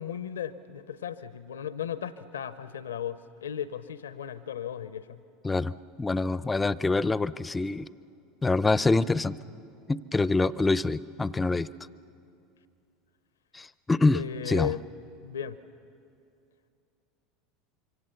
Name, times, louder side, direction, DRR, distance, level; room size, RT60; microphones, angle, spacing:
voice 1, 0.0-5.2 14.1-14.8 15.2-15.6, left 9 dB, 80° left, 14 dB, 0.7 m, -35 dB
voice 2, 5.4-7.9 8.4-9.4 9.9-11.7 13.5-14.2 14.5-14.7, left 3 dB, 15° left, 18 dB, 0.6 m, -25 dB
26.0 x 24.5 x 6.9 m, 2.5 s
hypercardioid pair, 80°, 0 cm